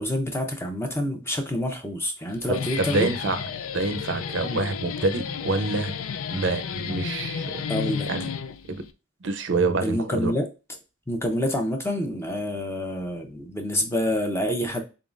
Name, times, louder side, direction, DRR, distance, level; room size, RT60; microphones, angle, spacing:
voice 1, 0.0-3.1 4.4-4.6 7.7-8.1 9.8-10.5 11.1-14.8, left 1 dB, 10° left, 0.7 m, -27 dB
Guitar, 2.3-8.9, left 7 dB, 90° left, 0.5 m, -32 dB
voice 2, 2.5-3.4 3.7-6.0 6.3-7.6 8.1-8.3 8.7-8.8 9.2-10.3, right 3 dB, 60° right, 0.6 m, -27 dB
3.8 x 3.7 x 2.5 m
head